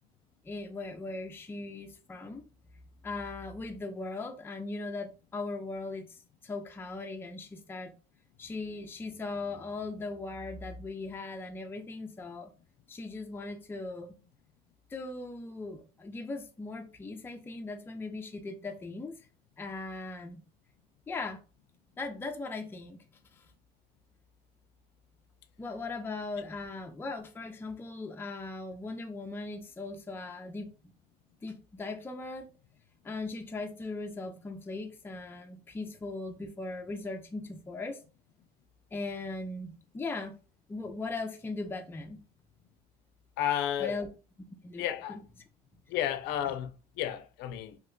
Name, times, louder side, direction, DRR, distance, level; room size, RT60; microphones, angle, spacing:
voice 1, 0.4-2.4 3.0-7.9 8.4-12.5 12.9-14.1 14.9-19.2 19.6-20.4 21.1-21.4 22.0-23.0 23.3-23.5 25.6-30.7 31.4-32.5 33.0-38.0 38.9-40.4 40.7-42.2 43.8-44.1 44.6-44.8 45.1-45.2, left 3 dB, 15° left, 0.4 m, -39 dB
voice 2, 43.4-44.0 44.8-45.2 45.9-47.8, left 10 dB, 90° left, 0.4 m, -32 dB
2.8 x 2.1 x 3.7 m
cardioid pair, 110°, 17 cm